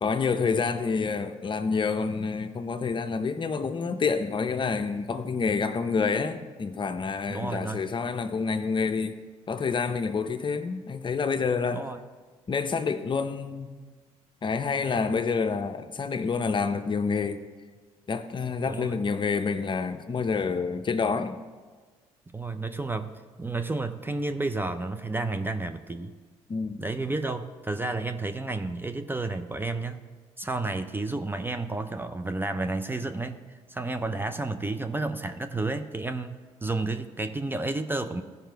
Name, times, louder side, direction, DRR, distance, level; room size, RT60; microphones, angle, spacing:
voice 1, 0.0-9.2 9.5-11.9 12.5-13.7 14.4-17.4 18.1-21.4 26.5-26.8, left 5 dB, 35° left, 8 dB, 0.7 m, -28 dB
voice 2, 7.3-7.8 11.7-12.0 18.7-19.0 22.3-23.1 23.4-26.1 26.8-30.0 30.4-33.4 33.7-38.2, right 2 dB, 15° right, 9 dB, 0.6 m, -31 dB
14.5 x 5.6 x 4.6 m, 1.4 s
supercardioid pair, 65°, 13 cm